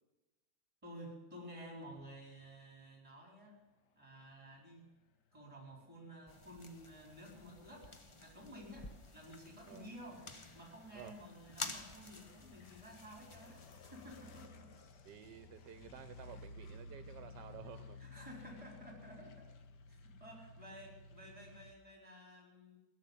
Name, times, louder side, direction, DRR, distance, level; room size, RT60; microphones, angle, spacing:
voice 1, 0.8-3.6 3.9-4.9 5.3-10.3 10.5-14.9 18.0-19.5 19.9-22.8, equal, 15° right, 0 dB, 4.6 m, -53 dB
sound 1, 5.2-21.7, left 3 dB, 75° left, 1.7 m, -57 dB
sound 2, 6.3-14.5, left 2 dB, 25° left, 0.7 m, -51 dB
voice 2, 15.0-18.0, right 9 dB, 80° right, 10 dB, 1.4 m, -52 dB
17.0 x 7.3 x 9.9 m, 1.1 s
omnidirectional pair, 1.9 m